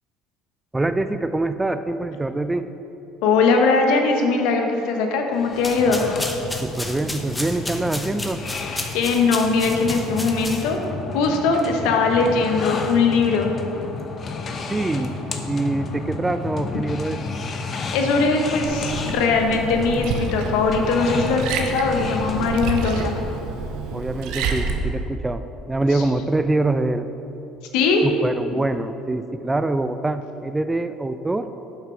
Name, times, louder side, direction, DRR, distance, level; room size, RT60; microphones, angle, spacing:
voice 1, 0.7-2.7 6.6-8.4 14.7-15.2 15.4-17.2 23.9-27.1 28.0-31.5, right 2 dB, 15° right, 11 dB, 0.4 m, -24 dB
voice 2, 3.2-6.0 8.7-10.8 11.1-13.5 17.9-23.1 27.7-28.0, left 4 dB, 75° left, 3 dB, 0.9 m, -20 dB
sound 1, 5.3-23.4, left 4 dB, 45° left, 0.8 m, -31 dB
sound 2, 5.5-10.9, left 1 dB, 10° left, 0.8 m, -33 dB
Liquid, 18.6-24.8, right 4 dB, 70° right, 0.7 m, -29 dB
7.4 x 5.5 x 5.1 m, 2.9 s
hypercardioid pair, 75°, 0 cm